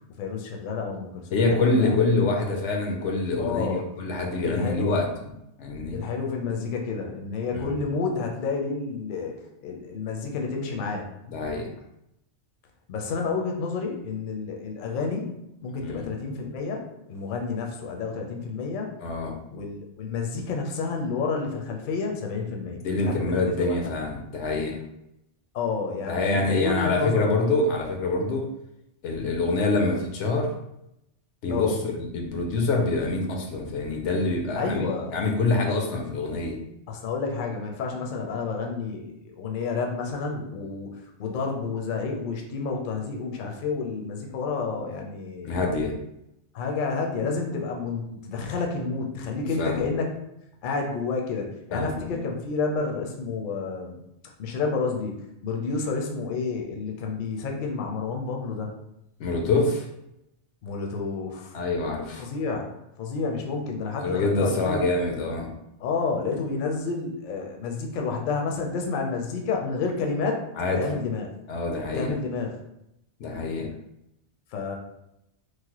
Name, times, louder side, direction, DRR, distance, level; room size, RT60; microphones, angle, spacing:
voice 1, 0.2-1.9 3.4-3.8 4.4-5.0 5.9-9.3 9.6-11.1 12.9-15.3 15.6-18.9 19.5-23.3 23.6-23.7 25.5-27.3 31.5-31.7 34.6-35.2 36.9-45.6 46.5-50.1 50.6-54.0 54.4-55.2 55.4-58.7 60.6-61.6 62.2-62.7 63.0-64.8 65.8-70.4 70.8-71.3 71.9-72.6 74.5-74.8, left 4 dB, 60° left, 1 dB, 0.6 m, -30 dB
voice 2, 1.3-5.1 5.6-6.0 7.5-7.8 11.3-11.7 15.8-16.1 19.0-19.3 22.5-24.8 26.1-28.4 29.0-30.5 31.4-36.6 45.4-45.9 49.3-49.9 51.7-52.2 59.2-59.9 61.5-62.2 64.0-65.5 70.6-70.8 71.5-72.1 73.2-73.7, left 3 dB, 90° left, 1 dB, 0.9 m, -26 dB
3.1 x 2.0 x 2.9 m, 0.83 s
omnidirectional pair, 1.2 m